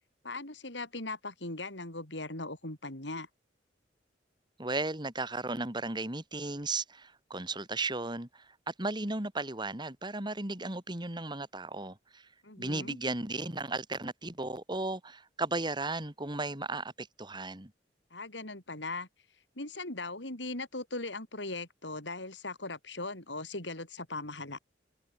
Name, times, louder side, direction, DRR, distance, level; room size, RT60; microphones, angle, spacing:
voice 1, 0.2-3.3 12.4-13.0 18.1-19.1 19.6-24.6, left 2 dB, 85° left, 7.2 m, -39 dB
voice 2, 4.6-12.3 12.6-17.7, right 2 dB, 25° right, 2.8 m, -35 dB
head